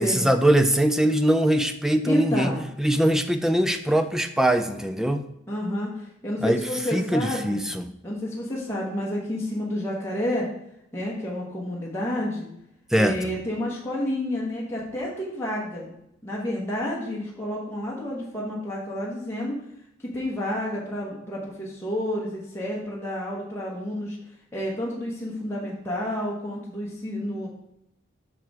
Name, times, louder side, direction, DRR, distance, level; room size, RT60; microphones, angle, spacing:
voice 1, 0.0-5.2 6.4-6.6 6.9-7.8 12.9-13.2, right 1 dB, ahead, 7 dB, 0.4 m, -22 dB
voice 2, 2.0-2.6 5.5-7.6 8.0-10.5 10.9-12.5 12.9-15.9 16.2-19.6 20.1-24.2 24.5-27.5, left 1 dB, 15° left, -5 dB, 1.1 m, -30 dB
6.0 x 4.8 x 4.7 m, 0.80 s
head